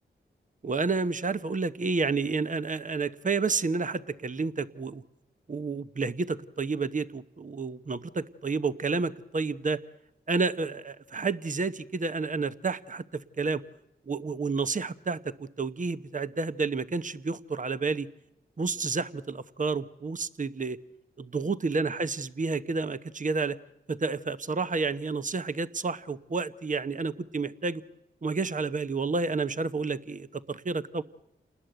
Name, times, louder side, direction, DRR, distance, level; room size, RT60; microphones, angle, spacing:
voice 1, 0.6-5.0 5.5-9.8 10.3-13.6 14.1-18.1 18.6-20.8 21.2-23.6 23.9-27.8 28.2-31.0, right 4 dB, 40° right, 13 dB, 1.0 m, -30 dB
28.5 x 19.5 x 8.0 m, 0.87 s
cardioid pair, 45°, 21 cm